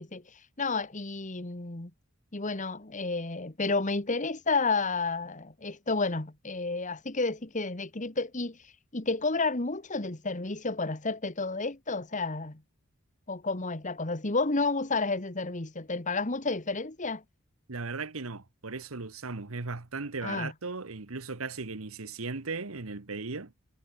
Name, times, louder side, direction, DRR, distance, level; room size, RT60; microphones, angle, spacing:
voice 1, 0.0-1.9 2.3-12.6 13.3-17.2 20.2-20.5, left 3 dB, 35° left, 1.7 m, -31 dB
voice 2, 17.7-23.5, right 3 dB, 85° right, 1.4 m, -37 dB
head